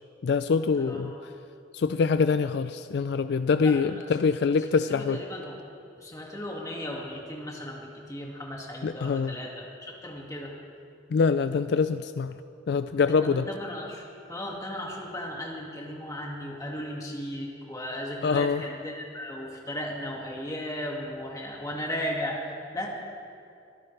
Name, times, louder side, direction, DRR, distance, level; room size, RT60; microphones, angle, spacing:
voice 1, 0.2-1.1 1.7-5.2 8.8-9.4 11.1-12.3 12.7-13.5 18.2-18.6, left 5 dB, 60° left, 11 dB, 0.3 m, -24 dB
voice 2, 0.8-1.2 3.5-4.1 4.7-5.6 6.0-10.5 13.1-14.0 14.3-22.4 22.7-22.9, left 1 dB, 20° left, -2 dB, 2.2 m, -36 dB
23.5 x 14.0 x 3.4 m, 2.6 s
head